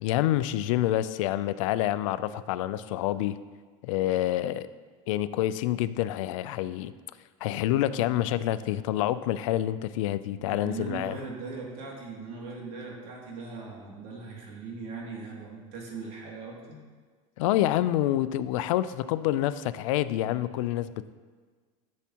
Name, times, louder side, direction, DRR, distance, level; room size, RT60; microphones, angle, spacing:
voice 1, 0.0-3.4 3.8-4.7 5.1-6.9 7.4-11.2 17.4-21.1, left 13 dB, 85° left, 14 dB, 0.4 m, -27 dB
voice 2, 10.4-16.8, right 4 dB, 60° right, -2 dB, 2.5 m, -39 dB
12.0 x 7.3 x 2.9 m, 1.5 s
supercardioid pair, 130°, 16 cm